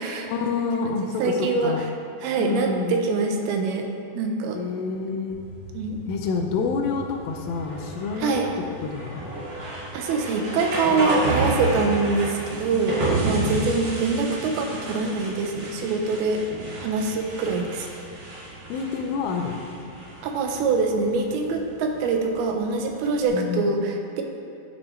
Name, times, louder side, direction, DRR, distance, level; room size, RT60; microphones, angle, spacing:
voice 1, 0.3-1.8 2.4-3.0 4.5-5.4 6.1-8.4 8.8-9.4 13.4-13.7 17.2-17.3 18.7-19.6 23.3-23.7, left 5 dB, 80° left, 3 dB, 2.4 m, -28 dB
voice 2, 1.2-1.8 2.2-3.9 4.1-4.6 5.7-6.0 8.2-8.5 9.9-16.4 16.8-17.9 20.2-24.2, right 4 dB, 90° right, 3 dB, 2.7 m, -24 dB
sound 1, 5.3-23.3, right 2 dB, 55° right, 3.0 m, -32 dB
11.0 x 6.0 x 3.1 m, 2.7 s
omnidirectional pair, 4.3 m